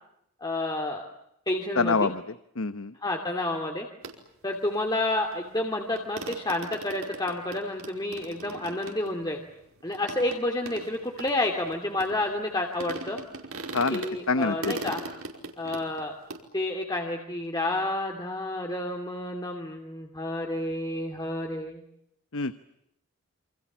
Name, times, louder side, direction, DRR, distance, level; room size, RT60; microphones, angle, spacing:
voice 1, 0.4-1.0 1.5-2.1 3.0-3.9 4.4-9.4 9.8-13.2 13.9-15.0 15.6-16.1 16.5-21.8, left 1 dB, 20° left, 2 dB, 2.7 m, -30 dB
voice 2, 1.8-2.2 2.6-2.9 13.7-14.0 14.3-14.7 22.3-22.5, left 4 dB, 65° left, 12 dB, 1.0 m, -25 dB
sound 1, 4.0-4.1 5.3-5.4 5.7-5.8 6.0-12.5 12.8-14.1 14.4-16.4, right 2 dB, 65° right, 5.0 m, -39 dB
28.5 x 27.0 x 7.4 m, 0.77 s
head